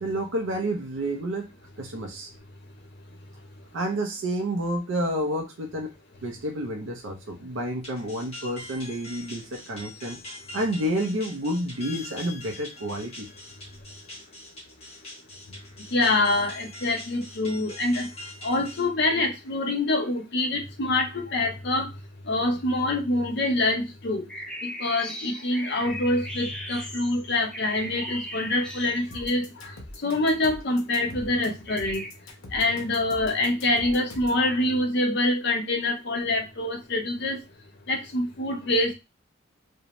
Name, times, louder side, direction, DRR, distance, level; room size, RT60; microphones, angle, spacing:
voice 1, 0.0-1.5 1.8-2.3 3.7-5.9 6.2-10.2 10.5-13.3, right 1 dB, 75° right, 2 dB, 0.5 m, -29 dB
sound 1, 7.8-18.9, left 2 dB, 30° left, 0.9 m, -43 dB
voice 2, 15.9-18.1 18.4-21.9 22.3-24.2 24.6-29.7 30.0-32.1 32.5-37.4 37.9-38.9, left 2 dB, 55° left, 4 dB, 0.6 m, -25 dB
sound 2, 24.3-29.3 31.6-32.1, left 1 dB, 5° left, 0.3 m, -37 dB
sound 3, 29.1-34.4, left 1 dB, 85° left, 0.8 m, -43 dB
2.6 x 2.0 x 2.9 m, 0.24 s
head